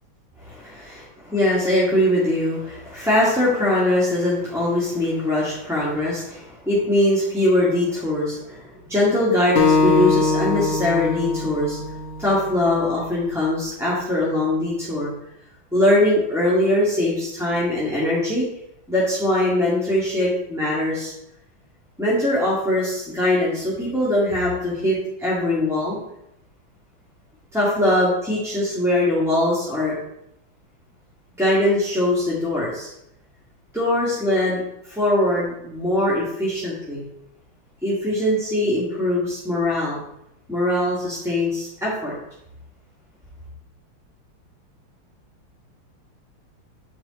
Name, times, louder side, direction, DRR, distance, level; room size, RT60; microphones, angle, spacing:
voice 1, 0.4-11.8 12.2-15.1 15.7-18.4 18.9-21.1 22.0-26.0 27.5-29.9 31.4-32.9 33.7-37.1 37.8-40.0 40.5-42.1, left 1 dB, ahead, -9 dB, 1.6 m, -21 dB
Acoustic guitar, 9.6-12.8, left 4 dB, 55° left, 0.8 m, -22 dB
9.1 x 4.8 x 4.2 m, 0.81 s
omnidirectional pair, 2.3 m